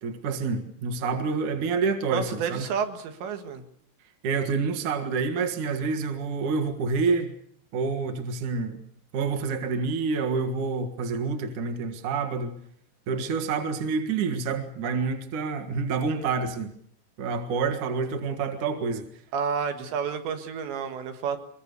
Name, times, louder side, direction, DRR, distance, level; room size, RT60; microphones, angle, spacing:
voice 1, 0.0-2.7 4.2-7.4 7.7-8.8 9.1-12.6 13.1-16.7 17.2-19.1, right 4 dB, 55° right, 4 dB, 2.7 m, -28 dB
voice 2, 2.1-3.6 19.3-21.4, right 6 dB, 90° right, 7 dB, 4.1 m, -30 dB
23.5 x 23.0 x 6.9 m, 0.66 s
omnidirectional pair, 5.0 m